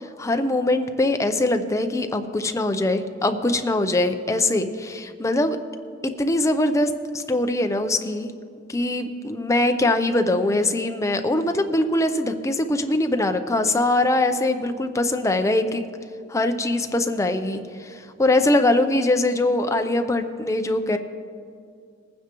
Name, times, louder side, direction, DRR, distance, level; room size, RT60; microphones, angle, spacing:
voice 1, 0.2-5.6 6.2-8.3 8.7-15.8 16.3-21.0, left 2 dB, 15° left, 7 dB, 0.5 m, -22 dB
21.0 x 9.5 x 3.0 m, 2.3 s
head